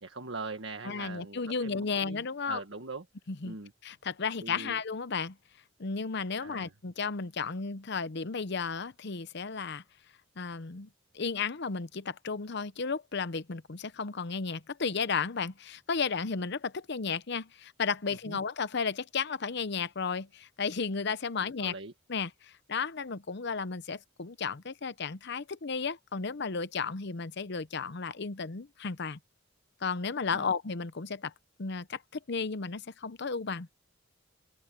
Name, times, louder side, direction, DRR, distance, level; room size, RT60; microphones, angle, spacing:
voice 1, 0.0-3.1 3.4-3.7 4.4-4.8 6.4-6.7 18.3-18.4 21.4-21.9 30.3-30.5, right 3 dB, 70° right, 1.8 m, -42 dB
voice 2, 0.8-2.6 3.3-3.5 3.8-5.4 5.8-9.8 10.4-10.9 11.1-21.7 22.1-29.2 29.8-31.3 31.6-32.0 32.3-33.7, left 5 dB, 60° left, 0.8 m, -33 dB
open air
head